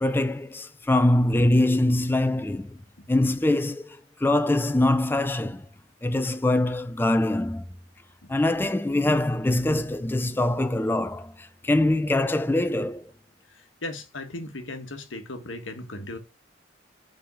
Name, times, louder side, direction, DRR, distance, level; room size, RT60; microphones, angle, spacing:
voice 1, 0.0-2.8 3.1-5.7 6.0-7.7 8.3-13.1, left 1 dB, 10° left, 0.3 m, -23 dB
voice 2, 13.5-16.2, left 2 dB, 85° left, 1.3 m, -37 dB
5.2 x 3.5 x 5.4 m
head